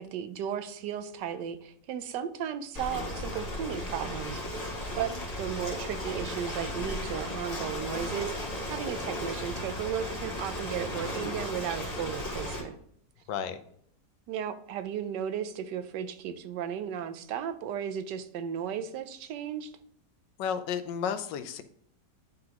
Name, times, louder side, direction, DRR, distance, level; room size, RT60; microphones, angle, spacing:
voice 1, 0.0-4.4 4.9-8.3 8.7-12.7 14.3-19.7, right 8 dB, 80° right, 10 dB, 1.2 m, -35 dB
Ocean, 2.7-12.6, left 1 dB, 25° left, 1.5 m, -35 dB
voice 2, 13.3-13.6 20.4-21.6, left 7 dB, 90° left, 11 dB, 1.3 m, -32 dB
10.5 x 3.9 x 2.9 m, 0.65 s
omnidirectional pair, 1.9 m